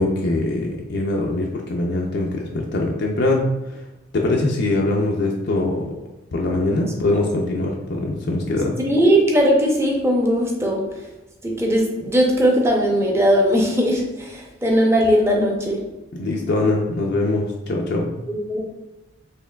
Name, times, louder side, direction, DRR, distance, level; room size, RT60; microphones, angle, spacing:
voice 1, 0.0-3.8 4.1-5.9 6.3-8.7 16.1-18.1, left 2 dB, 55° left, -1 dB, 0.4 m, -22 dB
voice 2, 8.9-10.8 11.4-15.8 18.3-18.6, equal, 15° right, -1 dB, 0.6 m, -19 dB
4.3 x 3.1 x 2.2 m, 1.0 s
head